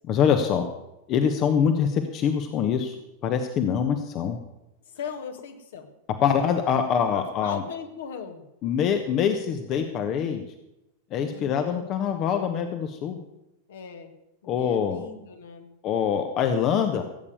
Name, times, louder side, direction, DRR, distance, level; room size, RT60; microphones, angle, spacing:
voice 1, 0.1-0.7 1.1-3.0 3.2-4.4 6.2-7.6 8.6-10.4 11.1-13.2 14.5-15.0 15.8-17.0, left 7 dB, 35° left, 7 dB, 1.2 m, -24 dB
voice 2, 4.9-5.9 7.1-8.5 11.3-11.9 13.7-14.1 14.4-15.7, left 6 dB, 60° left, 6 dB, 1.8 m, -38 dB
16.0 x 8.6 x 7.0 m, 0.91 s
figure-of-eight pair, 90°, 0 cm